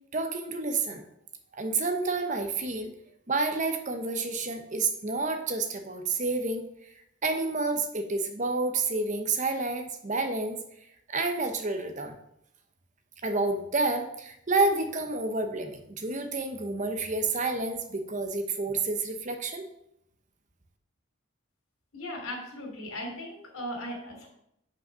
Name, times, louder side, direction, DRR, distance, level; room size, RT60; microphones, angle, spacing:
voice 1, 0.1-1.0 1.6-2.9 3.3-6.6 7.2-10.6 11.1-12.1 13.2-19.7, right 3 dB, 35° right, 6 dB, 0.8 m, -29 dB
voice 2, 21.9-24.3, left 1 dB, 90° left, 0 dB, 2.8 m, -37 dB
6.3 x 5.3 x 5.6 m, 0.76 s
head